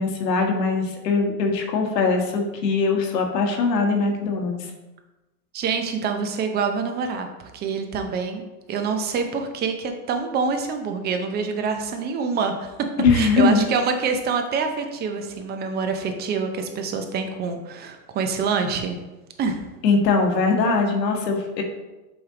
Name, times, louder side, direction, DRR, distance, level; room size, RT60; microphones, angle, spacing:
voice 1, 0.0-4.7 13.0-13.7 19.8-21.6, left 4 dB, 80° left, 3 dB, 1.4 m, -21 dB
voice 2, 5.5-7.3 7.5-8.4 8.7-12.7 13.1-19.0 19.4-19.6, right 5 dB, 20° right, 6 dB, 0.6 m, -26 dB
7.7 x 3.4 x 3.7 m, 1.1 s
hypercardioid pair, 125°, 49 cm